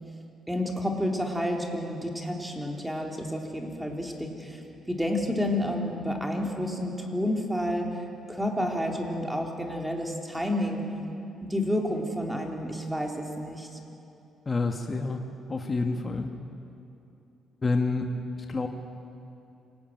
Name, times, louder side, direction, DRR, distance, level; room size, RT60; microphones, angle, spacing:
voice 1, 0.5-8.0 8.3-10.8 11.4-13.8, left 1 dB, 5° right, 2 dB, 3.7 m, -30 dB
voice 2, 14.5-16.3 17.6-18.1 18.5-18.7, left 3 dB, 30° left, 4 dB, 1.7 m, -28 dB
26.0 x 18.5 x 9.3 m, 2.7 s
cardioid pair, 90°, 0 cm